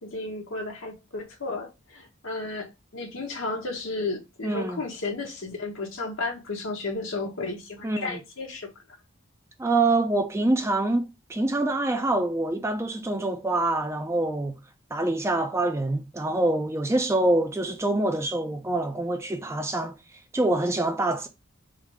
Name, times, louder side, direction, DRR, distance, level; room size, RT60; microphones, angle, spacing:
voice 1, 0.0-8.7, left 3 dB, 65° left, 1.2 m, -33 dB
voice 2, 4.4-4.8 7.8-8.2 9.6-14.6 14.9-19.9 20.3-21.3, right 2 dB, 10° right, 0.4 m, -25 dB
3.7 x 2.7 x 4.7 m
head